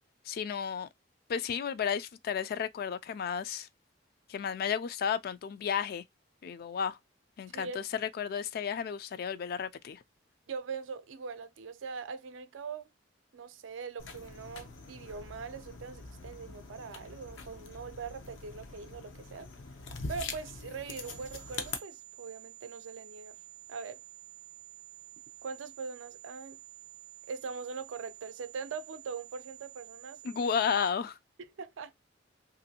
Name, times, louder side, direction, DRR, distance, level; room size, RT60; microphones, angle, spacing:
voice 1, 0.3-0.9 1.3-3.7 4.3-6.0 6.4-7.0 7.4-10.0 30.2-31.2, left 7 dB, 55° left, 0.3 m, -33 dB
voice 2, 7.5-7.8 10.5-12.9 13.3-19.5 20.1-23.4 23.7-24.0 25.4-26.6 27.3-30.2 30.5-30.6 31.4-31.9, right 5 dB, 90° right, 0.4 m, -42 dB
sound 1, 14.0-21.8, left 4 dB, 85° left, 0.6 m, -44 dB
sound 2, 20.9-30.9, right 13 dB, 20° right, 0.4 m, -51 dB
3.0 x 2.6 x 2.7 m
head